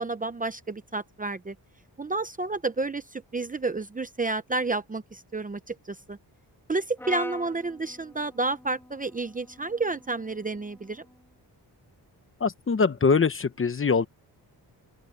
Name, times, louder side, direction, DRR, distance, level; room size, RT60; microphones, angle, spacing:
voice 1, 0.0-1.5 2.0-6.2 6.7-11.0, right 3 dB, 20° right, 0.7 m, -30 dB
Brass instrument, 7.0-11.2, left 1 dB, 5° left, 2.2 m, -45 dB
voice 2, 12.4-14.1, left 5 dB, 30° left, 1.0 m, -23 dB
open air
wide cardioid pair, 170°, 40 cm